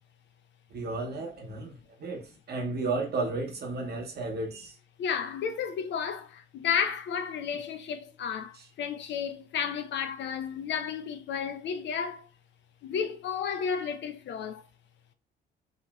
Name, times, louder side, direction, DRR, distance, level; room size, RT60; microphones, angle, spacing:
voice 1, 0.7-4.7, right 3 dB, 55° right, 0.8 m, -33 dB
voice 2, 5.0-12.3 12.8-14.6, left 7 dB, 65° left, 0.5 m, -32 dB
2.9 x 2.5 x 2.3 m
cardioid pair, 90°, 20 cm